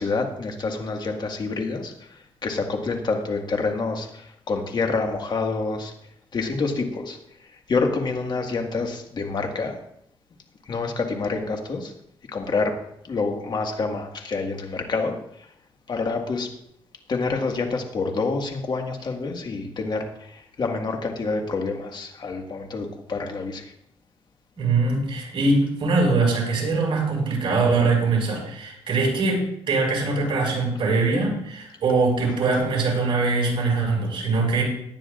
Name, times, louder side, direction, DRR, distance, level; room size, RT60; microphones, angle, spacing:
voice 1, 0.0-5.9 6.3-7.2 7.7-9.8 10.7-11.9 12.3-15.2 15.9-16.5 17.1-23.7, left 3 dB, 45° left, 3 dB, 1.8 m, -27 dB
voice 2, 24.6-34.6, right 3 dB, 55° right, -2 dB, 5.6 m, -22 dB
18.0 x 10.5 x 2.5 m, 0.74 s
cardioid pair, 95°, 10 cm